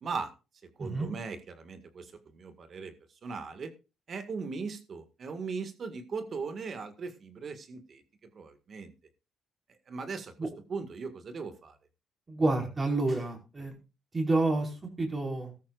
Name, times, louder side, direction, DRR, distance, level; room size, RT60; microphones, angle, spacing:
voice 1, 0.0-0.3 0.8-2.9 3.2-3.7 4.1-8.0 8.4-8.9 9.9-10.3 10.7-11.8, right 4 dB, 50° right, 9 dB, 1.9 m, -38 dB
voice 2, 0.8-1.1 10.4-10.5 12.3-13.7 14.1-15.5, right 2 dB, 30° right, 2 dB, 5.1 m, -29 dB
15.0 x 13.0 x 2.5 m, 0.30 s
cardioid pair, 90°, 0 cm